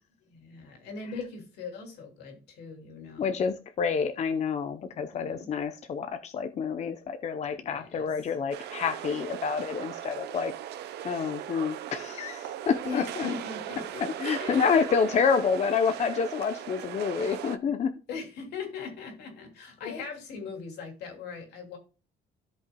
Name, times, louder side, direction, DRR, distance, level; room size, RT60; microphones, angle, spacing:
voice 1, 0.3-3.4 4.9-5.5 7.5-8.1 12.8-14.1 14.4-14.9 18.1-21.8, left 5 dB, 75° left, 3 dB, 2.8 m, -40 dB
voice 2, 3.2-10.5 11.0-13.3 14.0-17.9, left 6 dB, 40° left, 8 dB, 0.7 m, -28 dB
sound 1, 8.5-17.6, right 10 dB, 75° right, 0.8 m, -38 dB
13.5 x 5.4 x 2.3 m, 0.33 s
cardioid pair, 110°, 17 cm